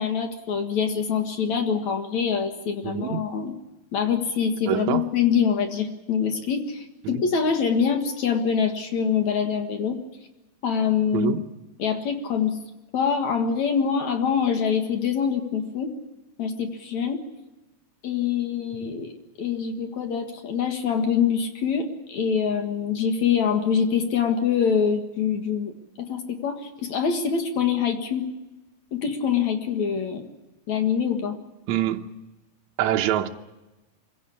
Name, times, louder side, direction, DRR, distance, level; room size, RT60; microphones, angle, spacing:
voice 1, 0.0-3.5 3.9-10.0 10.6-11.3 11.8-12.6 12.9-15.9 16.4-17.2 18.0-19.1 19.4-25.7 26.1-28.3 28.9-30.2 30.7-31.4, left 7 dB, 55° left, 2.6 m, -24 dB
voice 2, 2.8-3.3 4.7-5.1 7.0-7.2 11.1-11.4 31.7-32.0 32.8-33.3, right 11 dB, 75° right, 1.7 m, -25 dB
24.5 x 16.5 x 8.6 m
omnidirectional pair, 4.6 m